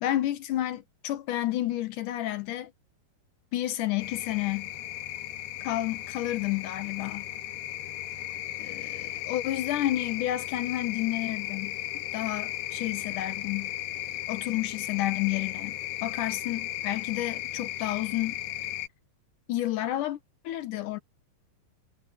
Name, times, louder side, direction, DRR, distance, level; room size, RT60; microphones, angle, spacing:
voice 1, 0.0-2.7 3.5-4.7 5.6-7.3 8.6-11.8 12.1-13.7 14.3-15.7 16.0-18.4 19.5-20.2 20.4-21.0, left 14 dB, 70° left, 2.2 m, -30 dB
sound 1, 4.0-18.9, left 14 dB, 90° left, 3.9 m, -36 dB
omnidirectional pair, 4.6 m